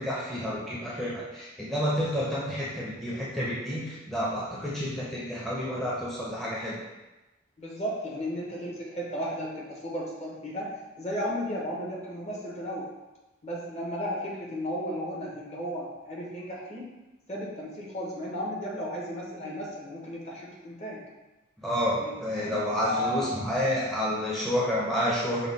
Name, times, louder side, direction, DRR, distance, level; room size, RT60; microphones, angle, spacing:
voice 1, 0.0-6.8 21.6-25.5, equal, ahead, -7 dB, 0.7 m, -29 dB
voice 2, 7.6-12.9 13.4-16.9 17.3-21.0 22.0-22.6 22.9-23.3, equal, 35° left, -3 dB, 0.9 m, -34 dB
5.4 x 2.3 x 4.0 m, 1.1 s
head